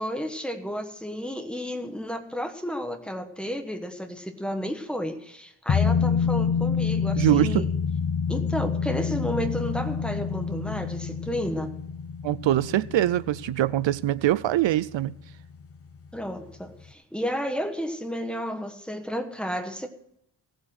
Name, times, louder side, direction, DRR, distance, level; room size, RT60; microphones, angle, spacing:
voice 1, 0.0-7.6 8.3-11.7 16.1-19.9, equal, ahead, 1.2 m, -32 dB
sound 1, 5.7-14.8 15.1-15.2, left 6 dB, 30° left, 0.7 m, -27 dB
voice 2, 7.2-7.7 12.2-15.2, right 14 dB, 75° right, 0.5 m, -23 dB
17.0 x 7.8 x 6.2 m
wide cardioid pair, 165°, 46 cm